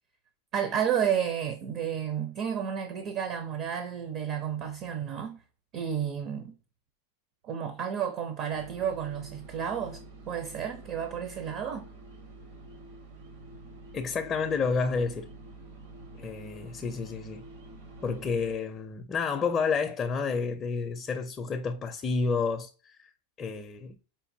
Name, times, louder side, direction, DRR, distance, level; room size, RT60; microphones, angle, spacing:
voice 1, 0.5-5.4 5.7-6.6 7.4-10.0 10.3-11.8, right 8 dB, 45° right, 0.6 m, -31 dB
sound 1, 8.5-18.5, right 2 dB, 70° right, 1.2 m, -48 dB
voice 2, 13.9-15.3 16.1-17.4 18.0-23.1 23.4-24.0, left 5 dB, 25° left, 0.4 m, -30 dB
5.1 x 2.6 x 2.6 m
supercardioid pair, 130°, 0 cm